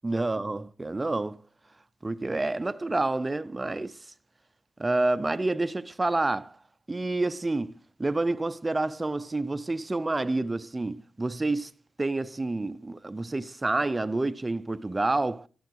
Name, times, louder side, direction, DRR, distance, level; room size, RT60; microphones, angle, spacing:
voice 1, 0.0-1.4 2.0-4.0 4.8-6.6 6.9-7.7 8.0-11.7 12.0-15.5, right 2 dB, 15° right, 0.4 m, -28 dB
12.5 x 6.9 x 4.5 m
wide cardioid pair, 145°, 0 cm